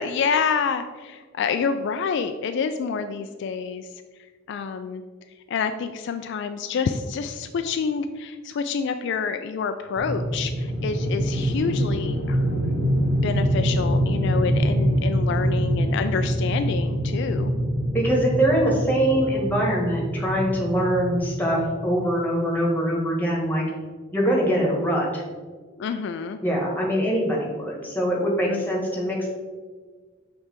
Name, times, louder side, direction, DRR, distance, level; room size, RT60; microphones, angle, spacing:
voice 1, 0.0-4.0 4.5-5.0 5.5-12.9 13.2-17.5 25.8-26.4 28.5-28.9, left 5 dB, 60° left, 8 dB, 0.3 m, -28 dB
sound 1, 10.0-22.2, equal, 60° right, 1.5 m, -25 dB
voice 2, 17.9-23.6 24.1-25.2 26.4-29.3, equal, 10° left, -2 dB, 1.3 m, -23 dB
6.6 x 3.4 x 4.3 m, 1.4 s
head